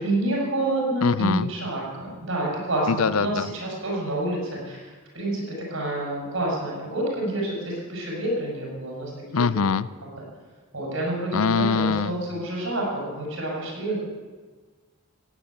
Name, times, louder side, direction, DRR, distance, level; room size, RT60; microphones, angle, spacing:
voice 1, 0.0-9.4 10.0-10.1 10.7-14.0, right 1 dB, 60° right, -3 dB, 6.6 m, -28 dB
voice 2, 1.0-1.5 2.9-3.5 9.3-9.9 11.3-12.2, left 5 dB, 75° left, 17 dB, 0.5 m, -23 dB
15.0 x 8.3 x 9.8 m, 1.4 s
head